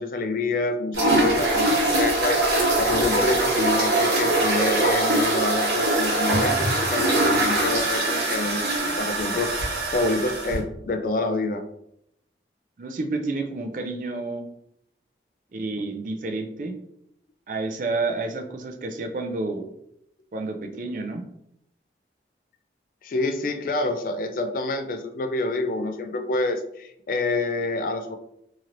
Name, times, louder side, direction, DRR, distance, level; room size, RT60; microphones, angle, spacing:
voice 1, 0.0-8.6 9.0-11.6 23.0-28.2, left 2 dB, 50° left, 7 dB, 0.3 m, -27 dB
sound 1, 0.9-10.6, right 2 dB, 85° right, 1.0 m, -22 dB
voice 2, 12.8-14.5 15.5-16.8 17.5-19.7 20.3-21.2, right 3 dB, 45° right, 4 dB, 0.4 m, -30 dB
3.0 x 2.8 x 2.5 m, 0.76 s
head